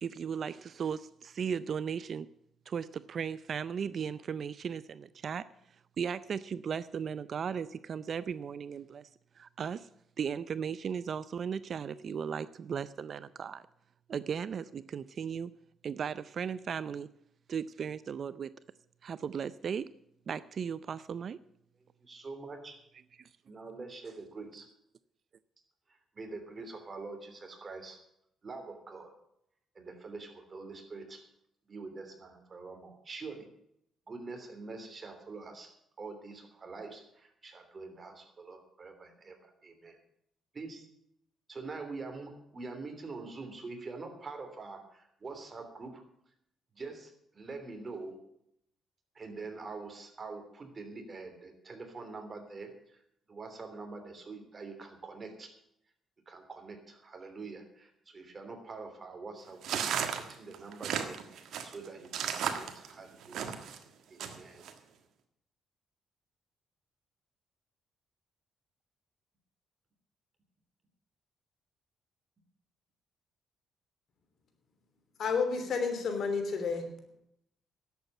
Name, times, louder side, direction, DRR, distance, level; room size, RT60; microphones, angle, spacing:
voice 1, 0.0-2.3 2.7-5.4 6.0-9.1 9.4-9.9 10.2-13.6 14.1-15.5 15.8-17.1 17.5-18.5 19.0-19.9 20.3-21.4 23.2-23.3, right 7 dB, 55° right, 0.4 m, -36 dB
voice 2, 22.0-22.7 23.5-24.7 26.1-28.0 28.4-29.1 29.7-31.2 31.7-33.5 34.1-35.7 36.0-40.0 40.5-40.8 41.5-46.0 46.7-48.2 49.1-52.7 53.3-55.5 56.3-63.6 64.1-64.6, right 3 dB, 35° right, 3.2 m, -45 dB
sound 1, 59.6-63.8 64.2-64.7, right 8 dB, 75° right, 1.5 m, -34 dB
voice 3, 75.2-76.9, left 5 dB, 60° left, 3.0 m, -30 dB
11.5 x 8.2 x 9.0 m
cardioid pair, 90°, 0 cm